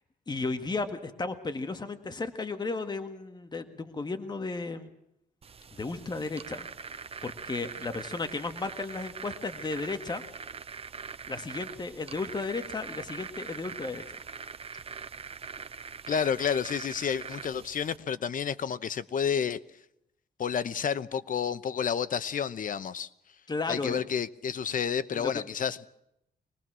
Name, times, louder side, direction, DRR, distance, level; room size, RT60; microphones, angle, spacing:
voice 1, 0.3-4.9 5.8-10.2 11.3-14.0 23.5-24.0 25.1-25.4, left 3 dB, 25° left, 1.8 m, -34 dB
sound 1, 5.4-18.0, right 5 dB, 35° right, 0.8 m, -43 dB
voice 2, 16.1-19.6 20.4-23.1 23.7-25.9, left 7 dB, 55° left, 1.0 m, -30 dB
25.0 x 19.5 x 6.2 m
cardioid pair, 120°, 17 cm